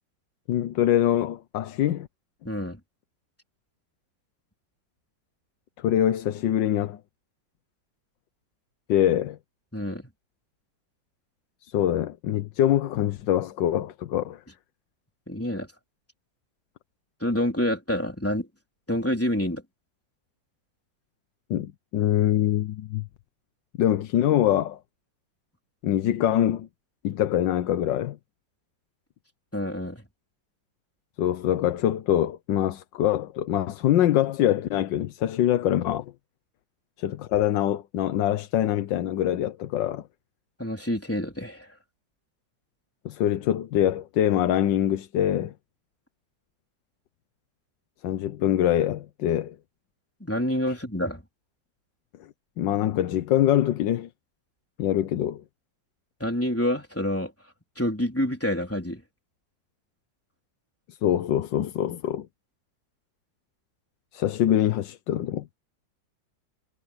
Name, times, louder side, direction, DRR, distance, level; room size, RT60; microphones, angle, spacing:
voice 1, 0.5-2.1 5.8-7.0 8.9-9.4 11.6-14.4 21.5-23.1 23.8-24.8 25.8-26.7 27.0-28.2 31.2-36.1 37.0-40.0 43.0-45.5 48.0-49.6 52.6-54.1 54.8-55.4 60.9-62.3 64.1-65.5, left 11 dB, 75° left, 1.5 m, -24 dB
voice 2, 2.4-2.8 9.7-10.1 15.3-15.7 17.2-18.5 18.9-19.6 29.5-30.0 40.6-41.7 50.2-51.2 56.2-57.3 57.8-59.0, left 1 dB, 5° left, 3.8 m, -27 dB
omnidirectional pair, 2.0 m